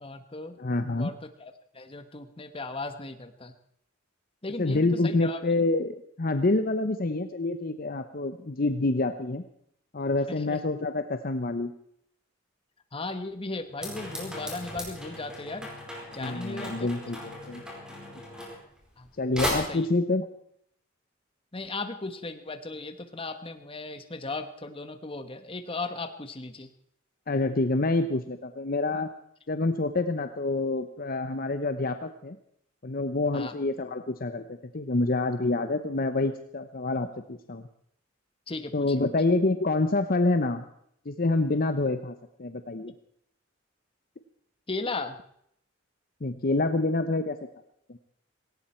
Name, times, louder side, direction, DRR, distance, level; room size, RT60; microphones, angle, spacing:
voice 1, 0.0-0.6 1.0-3.5 4.4-5.4 10.3-10.6 12.9-15.7 16.1-16.9 19.0-19.9 21.5-26.7 33.3-33.5 38.5-39.0 44.7-45.2, left 3 dB, 25° left, 8 dB, 1.3 m, -36 dB
voice 2, 0.6-1.1 4.6-9.4 9.9-11.7 16.2-17.6 19.2-20.3 27.3-29.1 29.5-32.4 32.8-34.4 34.7-37.7 38.7-40.6 41.0-42.9 46.2-47.4 47.9-48.0, left 2 dB, 45° left, 9 dB, 0.8 m, -27 dB
sound 1, 13.8-19.1 19.4-19.5, left 1 dB, 5° right, 4.5 m, -37 dB
18.0 x 17.5 x 4.5 m, 0.71 s
head